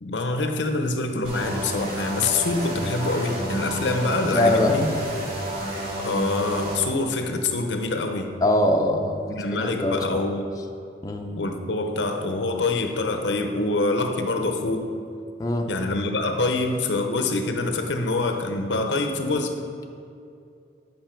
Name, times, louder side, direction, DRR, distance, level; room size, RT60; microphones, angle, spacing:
voice 1, 0.0-4.9 6.0-8.3 9.3-10.4 11.4-14.9 15.7-19.6, left 3 dB, 75° left, 5 dB, 0.7 m, -25 dB
sound 1, 1.2-6.8, right 1 dB, 55° right, 2.0 m, -30 dB
voice 2, 4.3-4.7 8.4-9.2 9.6-10.2 11.0-11.3 15.4-15.7, left 1 dB, 20° left, 1 dB, 0.5 m, -22 dB
8.8 x 5.4 x 4.4 m, 2.5 s
head